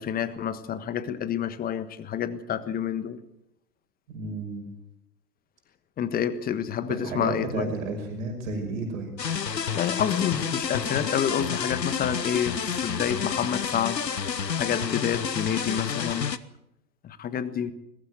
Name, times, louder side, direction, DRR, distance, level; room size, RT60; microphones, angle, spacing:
voice 1, 0.0-3.2 6.0-7.7 9.5-16.3 17.0-17.7, left 9 dB, 20° left, 13 dB, 1.4 m, -29 dB
voice 2, 4.1-4.6 6.9-9.2, right 3 dB, 50° right, 3 dB, 5.9 m, -32 dB
sound 1, 9.2-16.4, left 7 dB, 85° left, 1.1 m, -30 dB
21.5 x 16.0 x 7.9 m, 0.83 s
figure-of-eight pair, 105°, 49 cm